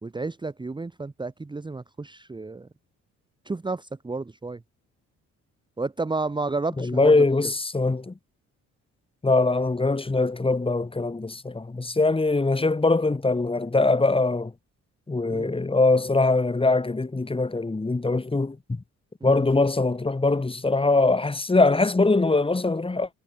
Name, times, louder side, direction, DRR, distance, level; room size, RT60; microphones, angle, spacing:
voice 1, 0.0-2.7 3.5-4.6 5.8-7.1 15.3-15.5 19.2-19.4, right 3 dB, 15° right, 1.1 m, -31 dB
voice 2, 6.8-8.1 9.2-14.5 15.1-18.8 19.2-23.1, left 3 dB, 20° left, 2.5 m, -22 dB
cardioid pair, 90°, 30 cm